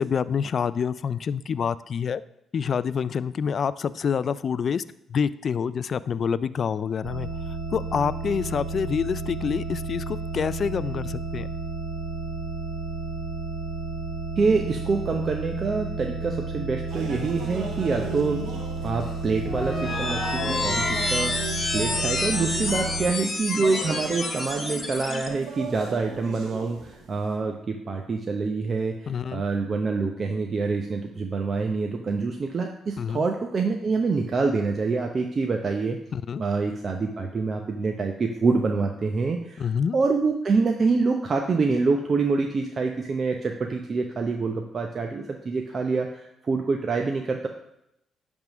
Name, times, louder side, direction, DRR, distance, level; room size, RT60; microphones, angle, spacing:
voice 1, 0.0-2.2 2.5-4.8 5.1-7.3 7.7-11.5 29.1-29.4 33.0-33.2 36.1-36.4 39.6-40.0, left 6 dB, 50° left, 15 dB, 0.3 m, -27 dB
sound 1, 7.0-23.1, right 3 dB, 90° right, 1.9 m, -32 dB
voice 2, 14.4-18.4 18.8-21.5 21.7-36.0 36.4-47.5, right 4 dB, 40° right, 3 dB, 0.7 m, -26 dB
sound 2, 16.9-27.4, right 3 dB, 75° right, 1.4 m, -38 dB
sound 3, 19.4-25.3, left 2 dB, 30° left, 1.6 m, -29 dB
10.5 x 3.6 x 6.0 m, 0.81 s
cardioid pair, 90°, 0 cm